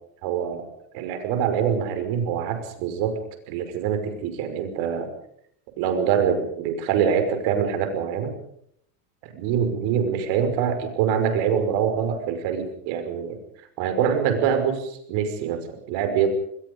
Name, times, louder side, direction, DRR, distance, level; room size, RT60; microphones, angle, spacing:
voice 1, 0.2-0.6 0.9-3.2 3.5-5.1 5.8-8.3 9.2-13.4 13.8-15.6 15.9-16.3, right 8 dB, 65° right, 8 dB, 5.7 m, -24 dB
26.5 x 21.0 x 5.4 m, 0.70 s
supercardioid pair, 120°, 48 cm